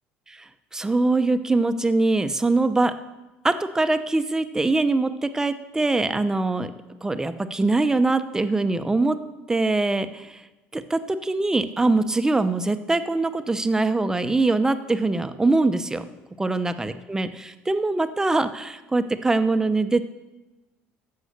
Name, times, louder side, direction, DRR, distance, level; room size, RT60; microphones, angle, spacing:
voice 1, 0.3-2.9 3.4-6.7 7.0-9.2 9.5-10.4 10.7-16.0 16.4-20.1, right 2 dB, 10° right, 10 dB, 0.8 m, -23 dB
14.5 x 5.7 x 6.6 m, 1.1 s
supercardioid pair, 100°, 5 cm